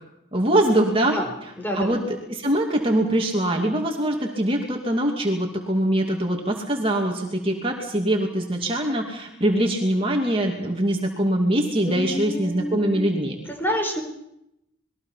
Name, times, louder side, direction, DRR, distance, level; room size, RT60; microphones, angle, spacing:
voice 1, 0.3-1.2 1.7-2.0 2.3-13.3, right 1 dB, 25° right, 1 dB, 2.6 m, -23 dB
voice 2, 1.1-2.0 11.8-13.2 13.5-14.0, equal, 10° left, 4 dB, 4.4 m, -29 dB
27.5 x 21.5 x 5.8 m, 0.81 s
head